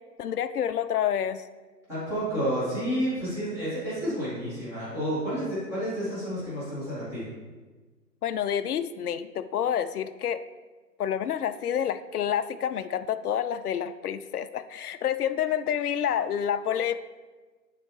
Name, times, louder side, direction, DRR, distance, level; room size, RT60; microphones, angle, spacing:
voice 1, 0.2-1.4 8.2-10.4 11.0-17.0, left 9 dB, 65° left, 11 dB, 0.5 m, -28 dB
voice 2, 1.9-7.2, equal, 5° right, -14 dB, 2.1 m, -30 dB
10.5 x 4.6 x 3.2 m, 1.3 s
hypercardioid pair, 150°, 50 cm